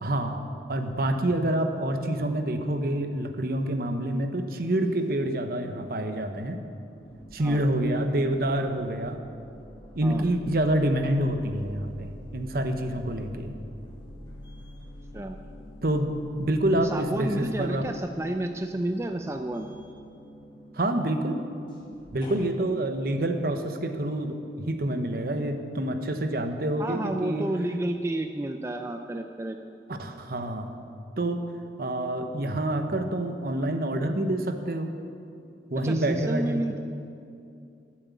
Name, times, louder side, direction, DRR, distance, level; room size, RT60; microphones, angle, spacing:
voice 1, 0.0-0.4 0.7-6.6 7.3-9.2 10.0-13.5 15.8-16.1 16.4-17.9 20.7-21.4 22.1-27.5 30.0-30.7 31.2-31.4 31.8-34.9 35.7-36.6, right 1 dB, 55° right, 6 dB, 0.9 m, -27 dB
sound 1, 5.4-6.2 6.6-22.5, left 1 dB, 25° left, 1.8 m, -47 dB
voice 2, 16.8-19.7 26.8-29.6 35.8-36.8, right 1 dB, 15° right, 5 dB, 0.4 m, -30 dB
12.0 x 7.6 x 8.3 m, 2.5 s
head